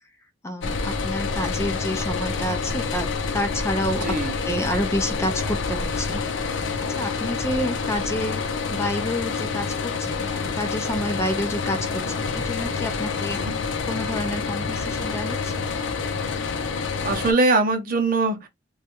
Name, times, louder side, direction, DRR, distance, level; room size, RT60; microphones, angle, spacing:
voice 1, 0.4-3.1 3.3-6.2 6.9-13.4 13.8-15.7, equal, 15° left, 0.4 m, -29 dB
sound 1, 0.6-17.3, left 4 dB, 90° left, 0.5 m, -27 dB
voice 2, 4.0-4.3 13.3-13.5 17.0-18.5, right 3 dB, 50° right, 0.7 m, -22 dB
3.0 x 2.3 x 2.9 m
head